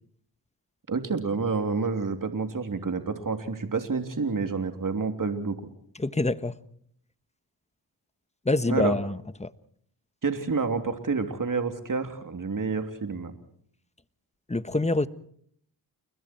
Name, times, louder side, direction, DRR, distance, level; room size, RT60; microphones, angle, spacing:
voice 1, 0.9-5.6 8.7-8.9 10.2-13.3, right 4 dB, 45° right, 3.3 m, -29 dB
voice 2, 6.0-6.5 8.5-9.1 9.4-9.5 14.5-15.1, left 2 dB, 15° left, 1.4 m, -25 dB
29.5 x 21.5 x 4.5 m
cardioid pair, 50°, 42 cm